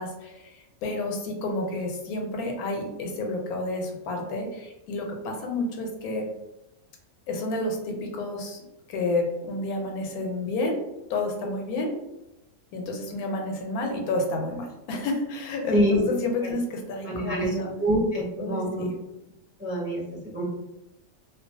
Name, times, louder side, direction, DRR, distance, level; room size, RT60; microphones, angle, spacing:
voice 1, 0.0-6.2 7.3-10.8 11.1-11.9 12.7-17.7 18.4-18.9, left 2 dB, 90° left, 2 dB, 1.1 m, -30 dB
voice 2, 15.7-16.0 16.4-16.5 17.0-17.5 17.8-18.8 19.6-20.0 20.3-20.4, equal, 15° right, -6 dB, 0.4 m, -25 dB
2.4 x 2.2 x 2.6 m, 0.92 s
omnidirectional pair, 1.5 m